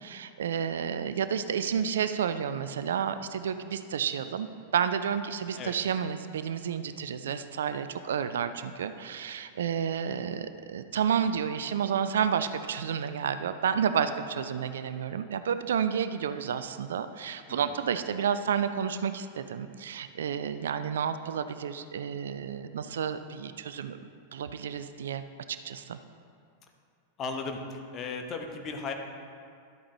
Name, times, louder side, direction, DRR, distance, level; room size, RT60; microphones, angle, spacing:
voice 1, 0.0-4.5 4.7-25.2 25.5-26.0, right 7 dB, 65° right, 11 dB, 0.3 m, -31 dB
voice 2, 27.2-28.9, left 4 dB, 30° left, 4 dB, 1.0 m, -36 dB
12.0 x 8.4 x 3.0 m, 2.3 s
figure-of-eight pair, 90°, 0 cm